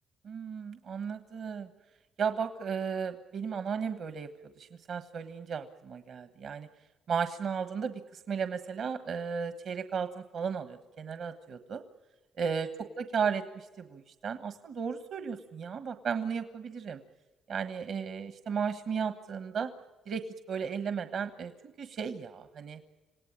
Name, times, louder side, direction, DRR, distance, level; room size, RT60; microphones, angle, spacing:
voice 1, 0.2-1.7 2.2-4.3 4.6-6.7 7.1-11.8 12.4-12.7 13.0-17.0 17.5-19.7 20.1-21.5 21.8-22.8, right 6 dB, 65° right, 9 dB, 1.3 m, -35 dB
27.0 x 18.0 x 8.9 m, 1.2 s
cardioid pair, 90°, 0 cm